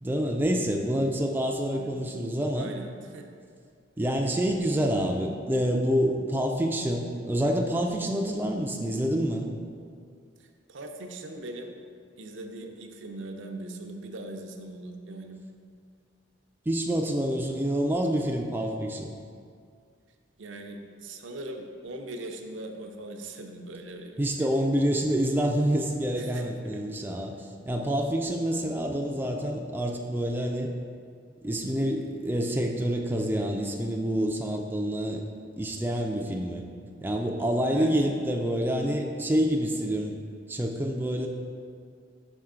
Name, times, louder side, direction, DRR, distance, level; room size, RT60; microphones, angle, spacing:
voice 1, 0.0-2.7 4.0-9.5 16.7-19.1 24.2-30.7 31.4-35.2 35.6-36.6 37.0-40.1 40.5-41.3, equal, 10° right, 0 dB, 0.3 m, -27 dB
voice 2, 2.6-3.3 10.4-11.8 12.2-15.4 20.4-24.5 26.2-26.5 26.7-26.8 37.7-38.0, right 2 dB, 70° right, 4 dB, 0.5 m, -40 dB
6.2 x 4.4 x 3.7 m, 2.2 s
head